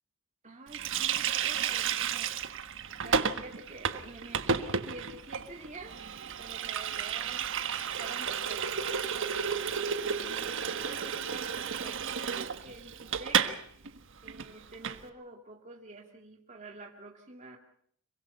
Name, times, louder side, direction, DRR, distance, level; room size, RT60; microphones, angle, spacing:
voice 1, 0.4-2.6 2.9-6.1 6.4-7.5 8.0-9.6 10.0-13.7 14.2-17.6, right 2 dB, 35° right, 1 dB, 2.3 m, -48 dB
Water tap faucet, 0.7-13.6 13.8-14.0 14.3-15.0, right 7 dB, 65° right, 1.4 m, -32 dB
26.5 x 23.5 x 5.6 m, 0.64 s
head